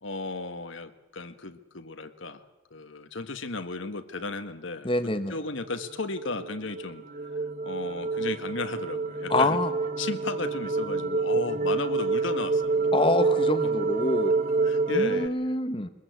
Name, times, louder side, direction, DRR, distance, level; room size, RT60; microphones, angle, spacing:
voice 1, 0.0-2.4 2.7-4.9 5.3-9.6 10.0-12.9 13.6-13.7 14.6-15.6, left 3 dB, 70° left, 9 dB, 1.6 m, -35 dB
voice 2, 4.8-5.3 9.3-9.7 12.9-14.3 14.9-15.9, left 2 dB, 25° left, 9 dB, 1.0 m, -26 dB
sound 1, 5.6-15.3, right 3 dB, 35° right, 0.8 m, -27 dB
22.5 x 21.0 x 8.1 m, 1.0 s
head